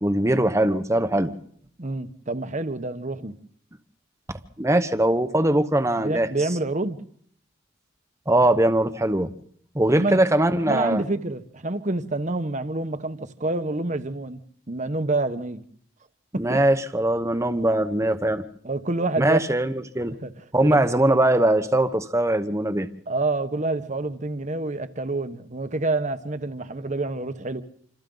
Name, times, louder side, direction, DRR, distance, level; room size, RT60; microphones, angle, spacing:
voice 1, 0.0-1.3 4.6-6.3 8.3-9.3 9.7-11.0 16.4-18.4 19.2-20.2 20.5-22.9, right 1 dB, 15° right, 1.0 m, -21 dB
voice 2, 1.8-3.3 6.0-7.0 9.9-10.2 10.7-14.4 14.7-15.6 16.3-16.6 18.6-19.4 20.2-20.3 20.7-20.9 23.1-27.6, right 2 dB, 40° right, 1.1 m, -27 dB
27.0 x 26.5 x 3.9 m
head